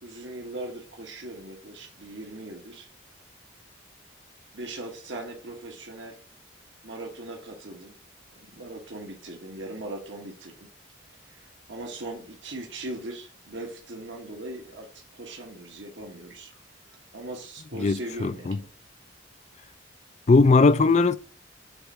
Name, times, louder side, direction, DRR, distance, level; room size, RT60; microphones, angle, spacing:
voice 1, 0.0-2.9 4.5-6.2 6.8-7.9 8.4-10.7 11.3-16.5 17.1-18.7, right 2 dB, 70° right, 1.4 m, -39 dB
voice 2, 17.8-18.6 20.3-21.2, left 3 dB, 35° left, 0.4 m, -19 dB
6.9 x 4.1 x 4.8 m
head